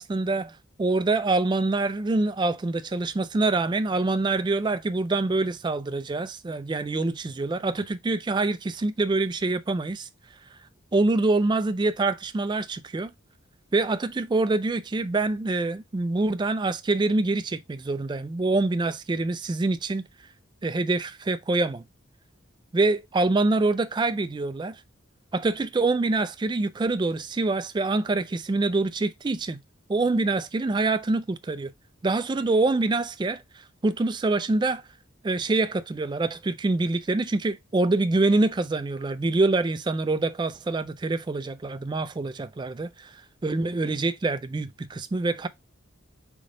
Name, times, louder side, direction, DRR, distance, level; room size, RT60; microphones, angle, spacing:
voice 1, 0.0-10.1 10.9-13.1 13.7-20.0 20.6-21.8 22.7-24.8 25.3-29.6 29.9-31.7 32.0-33.4 33.8-34.8 35.2-43.1 43.4-45.5, right 2 dB, 20° right, 0.3 m, -25 dB
4.0 x 3.6 x 3.7 m
head